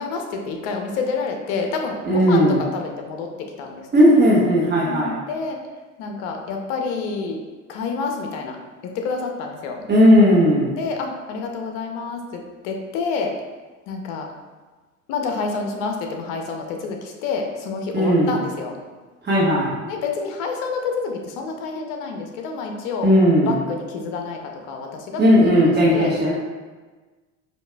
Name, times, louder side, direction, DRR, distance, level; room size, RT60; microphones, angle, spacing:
voice 1, 0.0-3.3 3.6-3.9 4.8-5.6 6.0-7.4 7.7-8.6 8.8-9.8 10.8-13.3 13.9-14.3 15.1-18.8 19.9-23.1 23.5-25.5 25.9-26.1, left 4 dB, 65° left, 3 dB, 0.7 m, -28 dB
voice 2, 2.0-2.6 3.9-5.1 9.9-10.7 17.9-18.4 19.2-19.7 23.0-23.6 25.2-26.3, equal, 25° right, -7 dB, 1.1 m, -16 dB
4.7 x 2.6 x 2.2 m, 1.3 s
hypercardioid pair, 75°, 40 cm